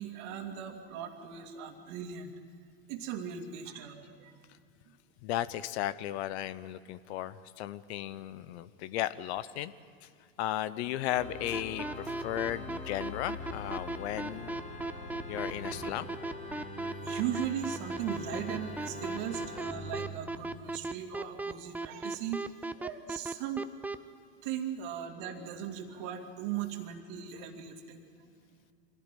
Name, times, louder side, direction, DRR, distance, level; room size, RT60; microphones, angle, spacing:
voice 1, 0.0-2.3 2.9-4.4 14.9-15.1 16.5-16.7 17.0-23.7 24.4-28.3, right 9 dB, 50° right, 5 dB, 2.5 m, -38 dB
voice 2, 5.2-9.7 10.0-10.1 10.4-14.6 15.3-16.1, left 13 dB, 55° left, 16 dB, 0.9 m, -35 dB
Organ, 11.1-20.2, left 1 dB, 20° left, 3.9 m, -43 dB
sound 1, 11.5-24.0, right 2 dB, 5° right, 0.5 m, -36 dB
24.5 x 16.5 x 9.2 m, 2.3 s
hypercardioid pair, 100°, 38 cm